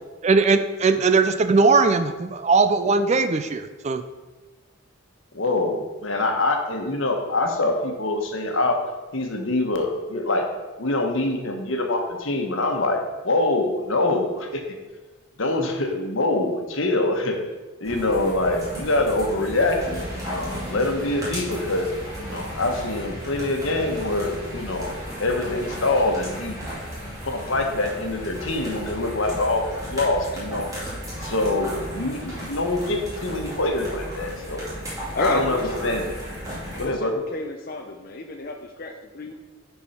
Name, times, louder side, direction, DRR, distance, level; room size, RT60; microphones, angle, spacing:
voice 1, 0.2-4.0, right 4 dB, 30° right, 10 dB, 0.4 m, -19 dB
voice 2, 5.3-8.8 9.1-10.4 10.8-14.6 15.4-17.4 17.8-21.9 22.2-24.9 25.2-26.6 27.2-30.7 31.2-34.7 35.2-36.1 36.8-37.1, left 2 dB, 70° left, 3 dB, 1.2 m, -24 dB
sound 1, 17.8-36.8, equal, 15° right, 2.4 m, -34 dB
voice 3, 35.1-36.0 36.8-39.3, left 2 dB, 45° left, 2 dB, 0.6 m, -30 dB
10.5 x 4.6 x 4.3 m, 1.2 s
head